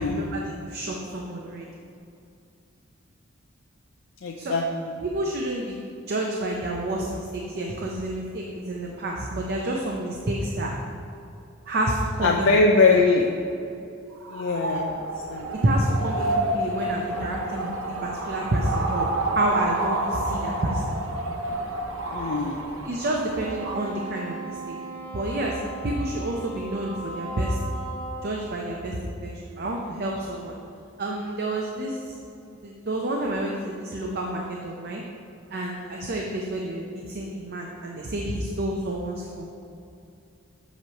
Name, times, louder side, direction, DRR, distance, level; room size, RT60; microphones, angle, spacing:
voice 1, 0.0-1.7 4.4-4.5 5.0-5.8 6.1-10.7 11.7-12.5 12.9-13.0 15.6-17.7 18.0-20.8 22.8-24.7 25.1-27.6 28.2-30.6 31.0-32.1 32.6-35.0 35.5-39.5, right 1 dB, 50° right, -1 dB, 0.6 m, -29 dB
voice 2, 4.2-5.0 12.2-13.3 14.3-15.0 15.3-15.5 22.1-22.6, left 3 dB, 65° left, 1 dB, 0.5 m, -22 dB
sound 1, 14.1-23.9, right 2 dB, 90° right, 0.8 m, -30 dB
Wind instrument woodwind instrument, 23.3-28.4, right 2 dB, 5° left, 1.1 m, -37 dB
8.0 x 3.1 x 5.7 m, 2.6 s
head